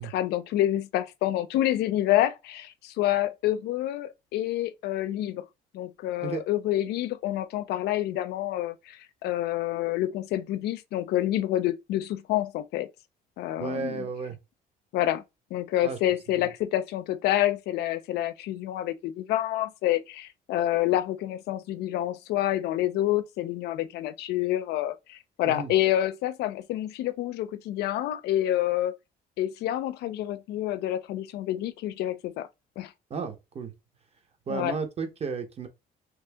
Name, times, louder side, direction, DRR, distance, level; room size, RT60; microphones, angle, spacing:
voice 1, 0.0-5.4 5.7-12.9 13.4-14.1 14.9-15.2 15.5-28.9 29.4-32.5 32.8-32.9 34.5-34.7, left 13 dB, 75° left, 0.4 m, -28 dB
voice 2, 13.6-14.4 15.8-16.0 16.4-16.5 25.5-25.7 33.1-33.7 34.5-35.7, right 5 dB, 40° right, 0.9 m, -33 dB
3.1 x 2.7 x 3.4 m
cardioid pair, 110°, 17 cm